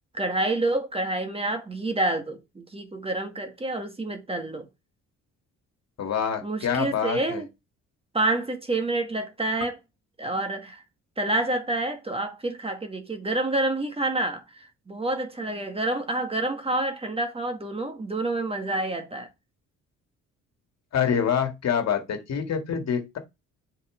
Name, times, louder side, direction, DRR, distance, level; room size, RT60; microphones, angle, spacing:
voice 1, 0.1-4.7 6.4-7.5 8.1-9.7 10.2-10.8 11.2-19.3, right 2 dB, 20° right, 1.4 m, -28 dB
voice 2, 6.0-7.4 20.9-23.2, left 7 dB, 60° left, 1.7 m, -26 dB
7.3 x 4.1 x 3.6 m
cardioid pair, 90°, 30 cm